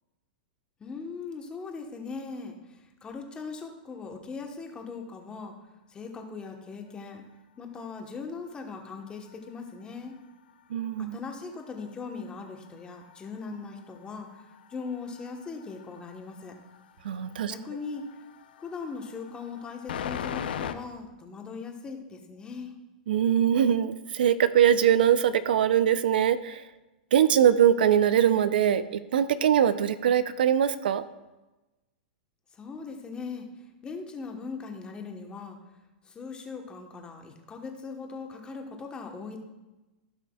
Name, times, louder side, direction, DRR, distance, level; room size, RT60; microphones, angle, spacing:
voice 1, 0.8-5.5 5.9-7.2 7.6-10.1 11.0-16.6 17.4-18.0 18.6-22.7 32.5-35.6 36.0-39.4, left 4 dB, 20° left, 3 dB, 1.2 m, -39 dB
sound 1, 8.5-10.9 11.2-20.7, left 8 dB, 80° left, 0.7 m, -42 dB
voice 2, 10.7-11.2 17.0-17.5 23.1-26.6 27.1-31.0, right 9 dB, 75° right, 13 dB, 0.6 m, -22 dB
16.0 x 5.7 x 2.4 m, 1.1 s
hypercardioid pair, 130°, 5 cm